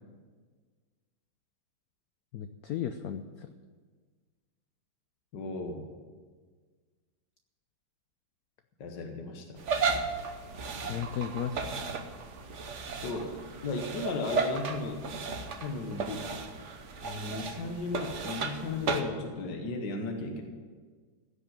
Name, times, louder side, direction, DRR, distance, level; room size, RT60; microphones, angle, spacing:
voice 1, 2.3-3.5 10.9-11.8, left 9 dB, 75° left, 9 dB, 0.8 m, -35 dB
voice 2, 5.3-5.9 8.8-9.6 12.9-15.0 15.6-16.3 17.0-20.4, left 3 dB, 60° left, 3 dB, 1.8 m, -35 dB
sound 1, 9.6-19.0, right 4 dB, 50° right, 0.9 m, -34 dB
16.0 x 5.4 x 8.9 m, 1.5 s
omnidirectional pair, 2.2 m